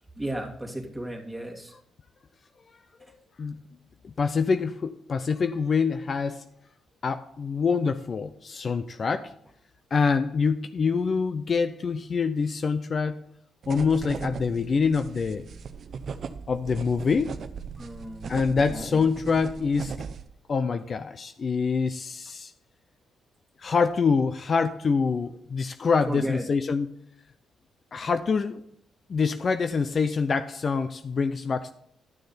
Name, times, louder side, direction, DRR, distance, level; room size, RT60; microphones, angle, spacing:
voice 1, 0.2-1.7 17.8-19.0 26.1-26.5, right 1 dB, 5° right, 0 dB, 2.4 m, -34 dB
voice 2, 4.0-6.5 7.0-9.3 9.9-13.2 13.7-15.4 16.5-17.4 18.3-19.9 20.5-22.5 23.6-26.9 27.9-28.6 29.1-31.7, left 5 dB, 50° left, 10 dB, 0.5 m, -25 dB
sound 1, 13.6-20.3, right 6 dB, 60° right, 0.7 m, -38 dB
11.5 x 6.5 x 4.2 m, 0.71 s
cardioid pair, 75°, 0 cm